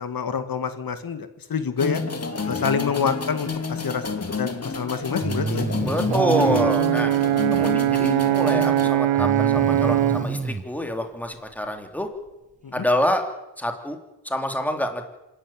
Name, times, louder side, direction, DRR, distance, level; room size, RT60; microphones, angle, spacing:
voice 1, 0.0-2.0 2.5-4.0 4.4-5.7 12.6-12.8, left 6 dB, 50° left, 10 dB, 2.2 m, -27 dB
sound 1, 1.8-8.9, left 5 dB, 35° left, 2.5 m, -29 dB
Breathing, 5.2-6.7 9.2-10.6, right 3 dB, 15° right, 1.1 m, -28 dB
voice 2, 5.8-7.1 7.5-12.1 12.7-13.2 13.6-14.0 14.2-15.1, left 1 dB, 5° left, 5 dB, 3.3 m, -26 dB
Brass instrument, 6.1-10.3, right 13 dB, 80° right, 0.8 m, -21 dB
26.0 x 11.5 x 9.0 m, 1.0 s
cardioid pair, 70°, 44 cm